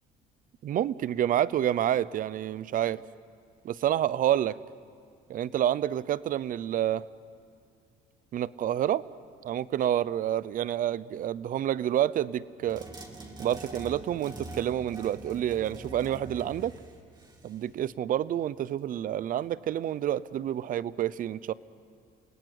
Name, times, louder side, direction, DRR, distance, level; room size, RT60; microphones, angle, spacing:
voice 1, 0.6-3.0 3.6-4.6 5.3-7.0 8.3-9.0 9.4-12.8 13.4-16.7 17.4-21.5, right 11 dB, 55° right, 19 dB, 0.7 m, -28 dB
sound 1, 12.7-17.7, right 2 dB, 25° right, 3.2 m, -44 dB
29.5 x 18.0 x 9.6 m, 2.2 s
cardioid pair, 110°, 17 cm